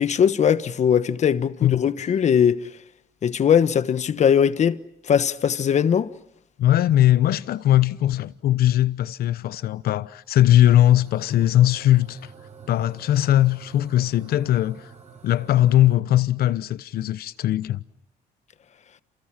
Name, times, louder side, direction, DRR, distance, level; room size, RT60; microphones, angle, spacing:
voice 1, 0.0-2.7 3.2-4.8 5.0-6.1, left 8 dB, 45° left, 1.2 m, -20 dB
voice 2, 6.6-12.2 12.7-14.8 15.2-17.8, left 13 dB, 65° left, 1.0 m, -20 dB
sound 1, 10.6-16.0, right 6 dB, 45° right, 5.4 m, -47 dB
29.5 x 28.0 x 6.0 m
cardioid pair, 110°, 17 cm